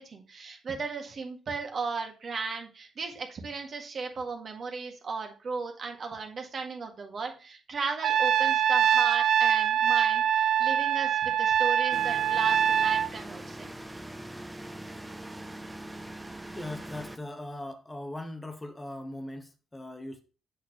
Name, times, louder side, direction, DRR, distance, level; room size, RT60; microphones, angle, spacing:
voice 1, 0.0-13.7, right 4 dB, 50° right, 1.7 m, -36 dB
Trumpet, 8.0-13.1, right 9 dB, 70° right, 0.4 m, -24 dB
sound 1, 11.9-17.2, right 1 dB, 15° right, 0.6 m, -42 dB
voice 2, 16.6-20.2, left 1 dB, 15° left, 0.9 m, -39 dB
7.2 x 6.4 x 3.1 m
cardioid pair, 90°, 0 cm